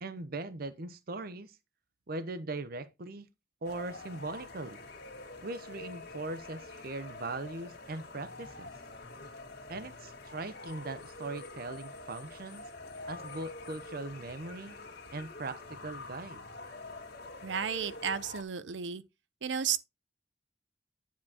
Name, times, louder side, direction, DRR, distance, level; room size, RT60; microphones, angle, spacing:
voice 1, 0.0-1.6 2.1-3.3 3.6-4.9 5.4-8.7 9.7-12.7 13.1-14.7 15.1-16.5, right 2 dB, 55° right, 0.8 m, -40 dB
sound 1, 3.6-18.4, left 2 dB, 60° left, 2.1 m, -46 dB
voice 2, 17.4-19.0 19.4-19.8, right 7 dB, 85° right, 0.6 m, -33 dB
9.7 x 7.3 x 2.8 m
head